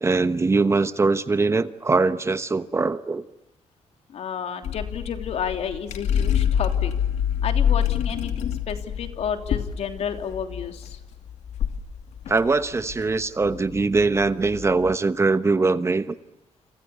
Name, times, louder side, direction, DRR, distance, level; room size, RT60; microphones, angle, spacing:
voice 1, 0.0-3.2 12.3-16.1, right 3 dB, 25° right, 12 dB, 1.1 m, -22 dB
voice 2, 4.1-6.9 7.4-11.0, left 7 dB, 65° left, 6 dB, 3.2 m, -31 dB
sound 1, 4.6-14.9, left 9 dB, 85° left, 2.7 m, -27 dB
29.0 x 28.0 x 7.1 m, 0.96 s
cardioid pair, 125°, 12 cm